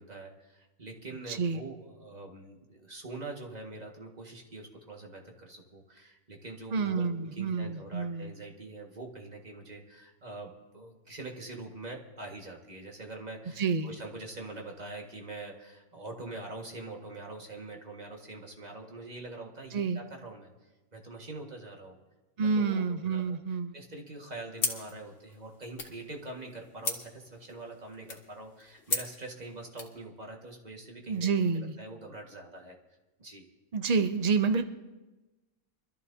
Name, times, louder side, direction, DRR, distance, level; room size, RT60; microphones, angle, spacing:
voice 1, 0.0-20.5 20.9-22.0 22.4-23.2 23.7-32.8 33.2-33.5, right 2 dB, 30° right, 1 dB, 1.8 m, -44 dB
voice 2, 1.3-1.7 6.7-8.4 13.6-14.0 19.7-20.0 22.4-23.8 31.1-31.8 33.7-34.7, right 5 dB, 60° right, 8 dB, 0.4 m, -29 dB
sound 1, 24.6-30.0, left 3 dB, 60° left, 2.0 m, -38 dB
24.5 x 13.5 x 2.7 m, 1.1 s
omnidirectional pair, 1.5 m